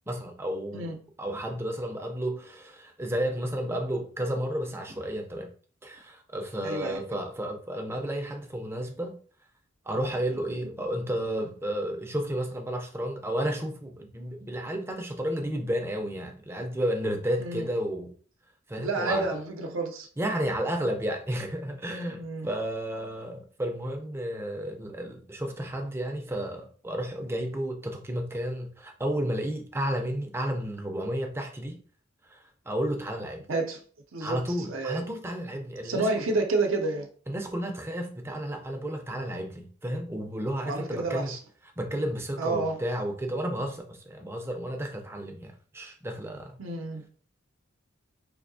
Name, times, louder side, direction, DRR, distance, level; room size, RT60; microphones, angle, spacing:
voice 1, 0.1-0.9 1.2-5.5 5.8-9.2 9.9-18.1 18.7-19.3 20.2-31.8 32.3-33.4 34.2-36.3 37.3-41.4 41.8-46.6, equal, 10° right, 0.5 m, -32 dB
voice 2, 6.6-7.0 17.4-17.7 18.8-20.1 22.1-22.5 33.5-33.8 34.1-34.4 34.7-35.0 35.8-37.1 40.6-41.4 42.4-42.8 46.6-47.0, right 3 dB, 80° right, 0.6 m, -29 dB
4.2 x 2.7 x 2.6 m
head